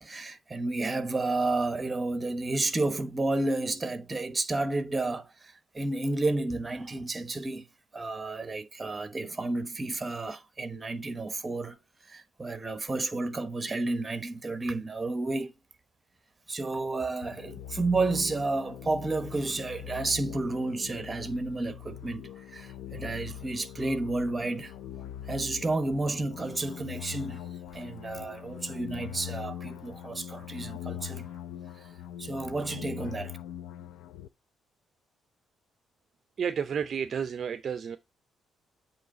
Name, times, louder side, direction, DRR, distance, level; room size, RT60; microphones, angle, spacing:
voice 1, 0.0-7.7 7.9-11.8 12.1-15.5 16.5-24.7 25.3-31.3 31.8-31.9 32.2-33.4, right 2 dB, 25° right, 1.1 m, -31 dB
sound 1, 17.2-34.3, left 11 dB, 90° left, 0.4 m, -42 dB
voice 2, 36.4-38.0, right 7 dB, 50° right, 0.5 m, -31 dB
8.3 x 3.1 x 3.8 m
cardioid pair, 90°, 0 cm